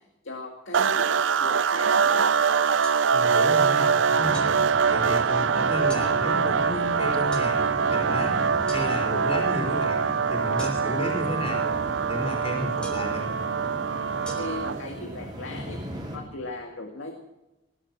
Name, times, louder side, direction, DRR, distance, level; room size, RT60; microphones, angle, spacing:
voice 1, 0.2-2.3 14.4-15.8 16.1-17.1, left 2 dB, 85° left, 3 dB, 2.1 m, -37 dB
sound 1, 0.7-14.9, right 6 dB, 75° right, 0.5 m, -24 dB
sound 2, 2.8-3.0 4.3-4.5 5.9-6.1 7.3-7.5 8.7-8.9 10.6-11.0 12.8-13.1 14.3-14.4, right 1 dB, 5° left, 3.3 m, -40 dB
voice 2, 3.1-4.5 4.9-8.4 8.7-10.0 10.3-11.7 12.1-13.3, left 1 dB, 30° left, 0 dB, 4.5 m, -32 dB
sound 3, 4.2-16.2, equal, 25° right, 5.2 m, -37 dB
19.5 x 11.5 x 6.1 m, 0.95 s
head